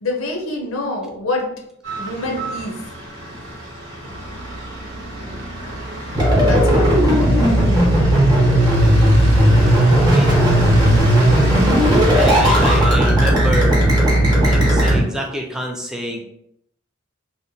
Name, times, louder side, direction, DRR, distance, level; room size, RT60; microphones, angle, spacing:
voice 1, 0.0-1.5 2.0-2.8 6.4-7.0, left 2 dB, 90° left, 2 dB, 0.6 m, -25 dB
sound 1, 1.8-12.8, right 1 dB, 80° right, 0.9 m, -29 dB
voice 2, 5.0-5.5 9.6-10.5 12.1-13.8 14.4-16.2, equal, 5° right, 0 dB, 0.4 m, -28 dB
sound 2, 6.1-15.0, right 1 dB, 20° right, 0.7 m, -14 dB
2.8 x 2.1 x 2.6 m, 0.74 s
head